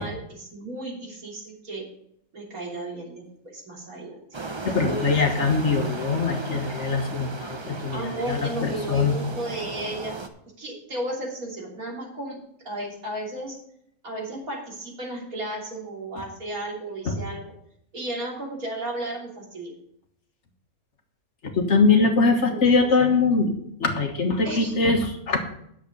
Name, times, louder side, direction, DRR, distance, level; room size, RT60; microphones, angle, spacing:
voice 1, 0.0-1.8 2.3-4.2 4.8-5.0 7.9-10.2 10.6-12.4 12.6-13.6 14.0-17.5 17.9-19.7 22.3-22.9 24.4-24.9, right 1 dB, 75° right, -3 dB, 3.7 m, -34 dB
sound 1, 4.3-10.3, right 3 dB, 25° right, 0.6 m, -36 dB
voice 2, 4.6-9.2 17.1-17.2 21.5-23.5 23.8-25.4, left 4 dB, 55° left, 4 dB, 1.6 m, -22 dB
10.0 x 7.6 x 5.4 m, 0.71 s
omnidirectional pair, 1.5 m